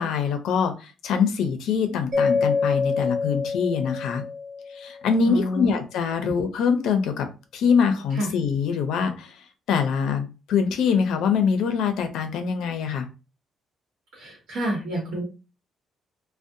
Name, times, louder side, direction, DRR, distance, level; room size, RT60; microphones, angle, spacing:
voice 1, 0.0-4.2 4.7-7.3 7.5-9.3 9.7-13.1, left 6 dB, 70° left, 7 dB, 0.4 m, -24 dB
Mallet percussion, 2.1-5.1, left 4 dB, 35° right, 0.6 m, -26 dB
voice 2, 5.2-5.7 6.2-6.3 8.2-8.3 14.2-15.2, equal, 65° right, -2 dB, 1.0 m, -28 dB
2.6 x 2.1 x 2.5 m, 0.30 s
cardioid pair, 175°, 0 cm